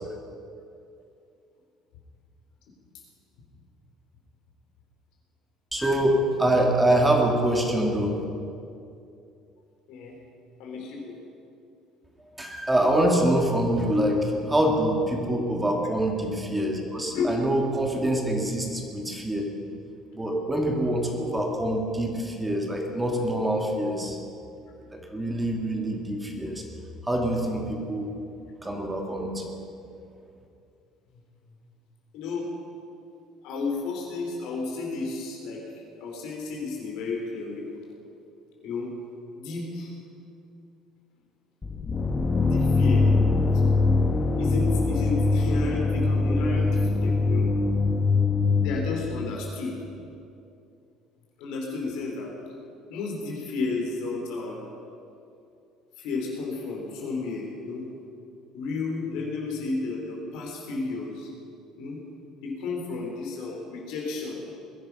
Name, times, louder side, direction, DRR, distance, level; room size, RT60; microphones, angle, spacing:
voice 1, 5.7-8.2 12.4-19.5 20.1-24.2 24.9-26.6 27.0-28.1 28.6-29.4, right 1 dB, 15° right, 1 dB, 2.7 m, -25 dB
voice 2, 10.6-11.2 17.1-17.3 32.1-32.5 33.4-37.7 38.6-38.9 39.4-40.0 42.4-43.6 44.3-47.5 48.6-49.8 51.4-52.3 52.9-54.6 56.0-57.9 58.5-61.3 61.8-62.0 62.4-64.4, left 4 dB, 70° left, -1 dB, 4.2 m, -32 dB
sound 1, 41.6-49.5, left 3 dB, 25° left, 1.5 m, -23 dB
21.5 x 10.5 x 5.7 m, 2.6 s
hypercardioid pair, 65°, 0 cm